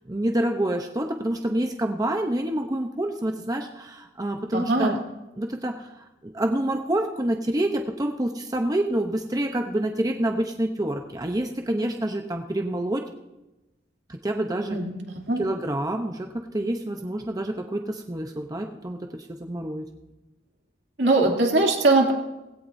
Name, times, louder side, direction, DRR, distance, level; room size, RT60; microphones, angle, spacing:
voice 1, 0.1-5.0 5.4-5.9 6.2-13.0 14.1-14.8 15.4-19.9 21.2-21.4, right 1 dB, 20° right, 4 dB, 0.7 m, -27 dB
voice 2, 4.5-4.9 14.7-14.9 15.3-15.4 21.0-22.1, right 2 dB, 70° right, 0 dB, 2.6 m, -20 dB
18.5 x 16.5 x 2.7 m, 1.0 s
head